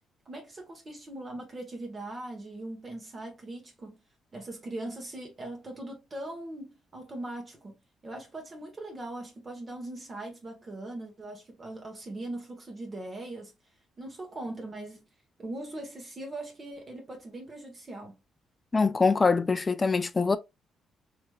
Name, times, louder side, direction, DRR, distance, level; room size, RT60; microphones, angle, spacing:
voice 1, 0.3-4.0 4.3-7.8 8.0-13.5 14.0-15.0 15.4-18.2, right 2 dB, 35° right, 1.0 m, -40 dB
voice 2, 18.7-20.4, left 4 dB, 30° left, 0.3 m, -24 dB
3.3 x 2.9 x 2.2 m
cardioid pair, 90°, 0 cm